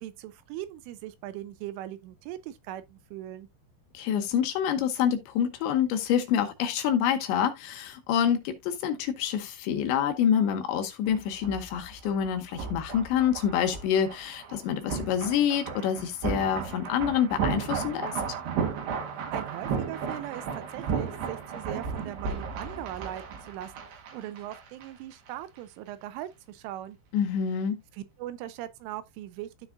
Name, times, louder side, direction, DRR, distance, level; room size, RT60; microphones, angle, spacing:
voice 1, 0.0-3.5 19.1-27.0 27.9-29.5, right 13 dB, 85° right, 3.1 m, -40 dB
voice 2, 3.9-18.2 27.1-27.8, left 8 dB, 75° left, 3.0 m, -27 dB
sound 1, 11.1-24.9 25.1-25.3, right 6 dB, 60° right, 3.7 m, -34 dB
13.5 x 4.7 x 2.5 m
omnidirectional pair, 5.7 m